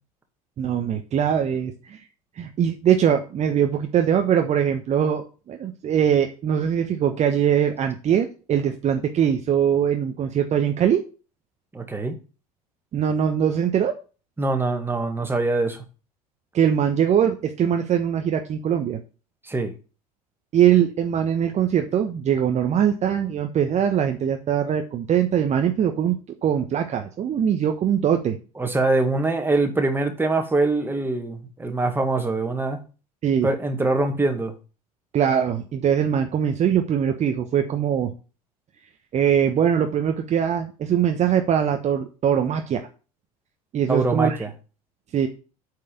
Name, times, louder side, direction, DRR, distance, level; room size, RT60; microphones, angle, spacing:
voice 1, 0.6-2.0 2.4-11.0 12.9-13.9 16.5-19.0 20.5-26.2 26.4-28.4 33.2-33.5 35.1-38.1 39.1-42.8 43.7-44.4 45.1-45.3, right 9 dB, 35° right, 5 dB, 1.1 m, -22 dB
voice 2, 11.7-12.2 14.4-15.8 19.5-19.7 28.6-32.8 33.4-34.5 43.9-44.5, right 2 dB, 10° right, 5 dB, 2.0 m, -23 dB
8.4 x 4.9 x 7.2 m, 0.35 s
figure-of-eight pair, 70°, 20 cm